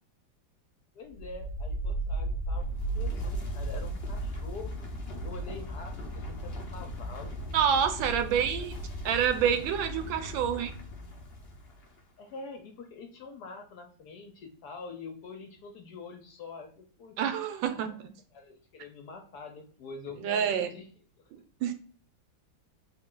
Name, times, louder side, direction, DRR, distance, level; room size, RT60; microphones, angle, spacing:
voice 1, 0.9-2.7 2.9-4.9 5.2-7.4 8.1-8.7 12.2-17.2 17.8-20.9, left 4 dB, 70° left, 3 dB, 1.0 m, -45 dB
sound 1, 1.1-11.9, right 1 dB, 85° left, 0.5 m, -36 dB
voice 2, 7.5-8.8 9.0-10.7 17.2-18.1 20.2-20.7 21.6-21.7, right 8 dB, 80° right, 9 dB, 1.3 m, -27 dB
3.8 x 2.3 x 3.6 m, 0.43 s
omnidirectional pair, 2.1 m